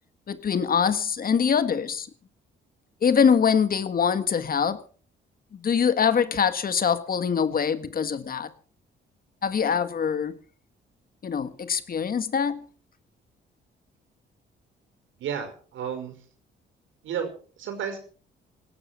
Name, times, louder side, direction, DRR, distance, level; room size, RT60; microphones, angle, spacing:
voice 1, 0.3-2.1 3.0-4.8 5.6-8.5 9.4-10.3 11.2-12.6, left 7 dB, 45° left, 1.7 m, -23 dB
voice 2, 15.2-16.3 17.0-18.0, right 7 dB, 80° right, 5.4 m, -32 dB
18.0 x 12.0 x 5.9 m
cardioid pair, 90°, 20 cm